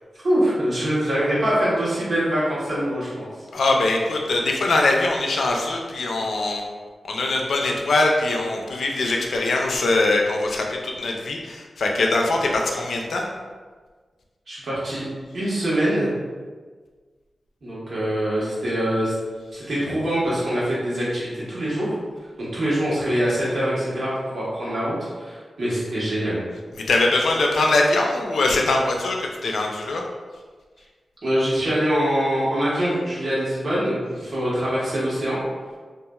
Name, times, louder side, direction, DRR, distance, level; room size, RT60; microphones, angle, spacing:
voice 1, 0.2-3.2 14.5-15.1 15.3-16.1 17.6-19.1 19.5-21.9 22.4-26.4 31.2-35.4, equal, 65° right, -8 dB, 1.1 m, -24 dB
voice 2, 3.5-6.6 7.1-13.3 26.9-30.0, left 2 dB, 80° left, 1 dB, 0.4 m, -22 dB
2.9 x 2.4 x 2.3 m, 1.5 s
cardioid pair, 55°, 0 cm